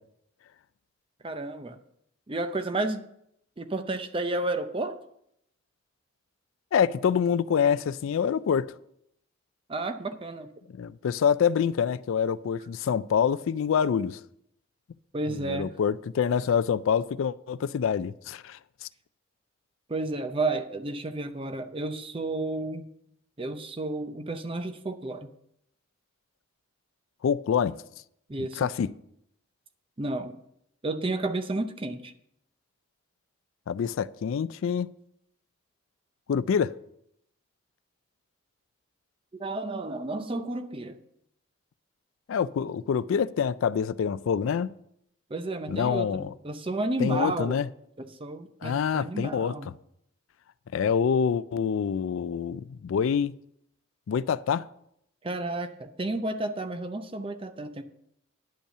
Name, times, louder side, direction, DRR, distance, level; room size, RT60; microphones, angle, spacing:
voice 1, 1.2-1.8 2.3-3.0 3.6-5.0 9.7-10.5 15.1-15.7 19.9-22.9 23.4-25.3 28.3-28.7 30.0-30.4 30.8-32.1 39.4-41.0 45.3-47.6 48.0-49.7 55.2-57.8, right 2 dB, 25° right, 0.6 m, -31 dB
voice 2, 6.7-8.7 10.7-14.2 15.3-18.9 27.2-27.8 28.6-28.9 33.7-34.9 36.3-36.7 42.3-44.7 45.7-46.3 47.0-47.7 48.6-49.7 50.7-53.3 54.1-54.7, left 7 dB, 70° left, 0.3 m, -26 dB
10.0 x 5.4 x 6.6 m
head